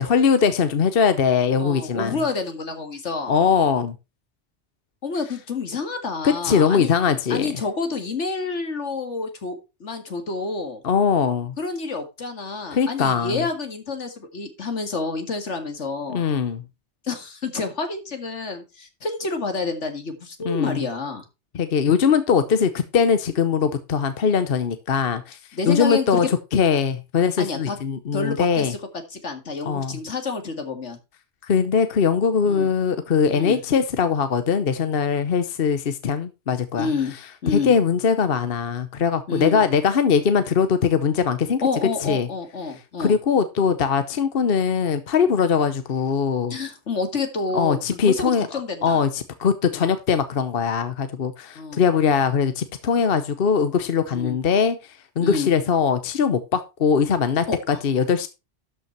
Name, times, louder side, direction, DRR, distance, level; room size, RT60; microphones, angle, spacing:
voice 1, 0.0-2.2 3.3-3.9 6.2-7.5 10.8-11.5 12.7-13.4 16.1-16.6 20.4-20.8 21.5-25.4 25.7-28.7 29.6-30.0 31.5-36.9 37.5-41.6 42.0-42.3 43.0-46.6 47.5-48.5 48.8-54.8 55.2-58.3, left 6 dB, 55° left, 1.0 m, -21 dB
voice 2, 1.6-3.3 5.0-6.9 7.3-10.8 11.6-16.3 17.0-21.2 25.5-26.2 27.4-27.8 28.1-28.8 29.1-31.0 32.4-32.7 33.3-33.6 36.8-37.1 37.4-37.7 39.3-39.6 41.6-43.2 46.5-49.0 51.6-51.8 54.1-54.4 55.2-55.5 57.5-57.8, left 4 dB, 75° left, 2.2 m, -29 dB
12.5 x 5.7 x 4.4 m
omnidirectional pair, 1.2 m